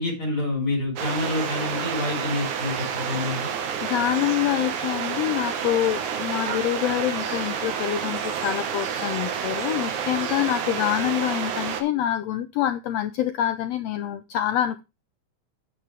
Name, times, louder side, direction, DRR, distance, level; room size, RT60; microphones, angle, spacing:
voice 1, 0.0-3.5, left 2 dB, 30° left, 2 dB, 5.6 m, -27 dB
sound 1, 1.0-11.8, right 7 dB, 70° right, 2.7 m, -29 dB
voice 2, 3.8-14.8, left 12 dB, 80° left, 10 dB, 1.5 m, -26 dB
9.1 x 8.6 x 3.3 m, 0.27 s
omnidirectional pair, 3.6 m